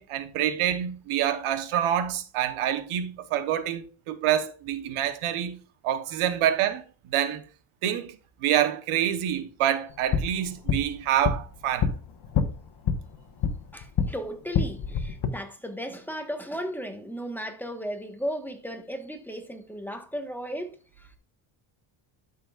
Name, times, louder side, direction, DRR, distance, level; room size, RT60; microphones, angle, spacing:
voice 1, 0.0-6.8 7.1-7.4 7.8-11.9, right 10 dB, 90° right, 1.1 m, -27 dB
sound 1, 9.9-14.1 14.4-15.3, left 6 dB, 55° left, 1.3 m, -28 dB
voice 2, 13.7-21.2, equal, 5° left, 1.3 m, -35 dB
12.0 x 6.4 x 2.4 m
cardioid pair, 115°, 48 cm